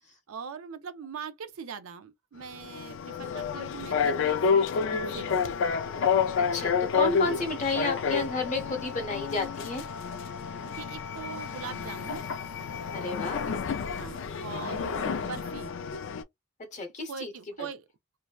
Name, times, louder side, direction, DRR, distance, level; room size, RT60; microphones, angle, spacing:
voice 1, 0.3-5.6 10.7-12.2 13.9-15.7 17.1-17.9, right 6 dB, 80° right, 0.4 m, -41 dB
sound 1, 2.4-16.2, left 6 dB, 60° left, 0.3 m, -29 dB
voice 2, 6.3-9.8 12.9-13.4 16.7-17.3, left 3 dB, 35° left, 0.9 m, -31 dB
2.6 x 2.1 x 2.2 m
head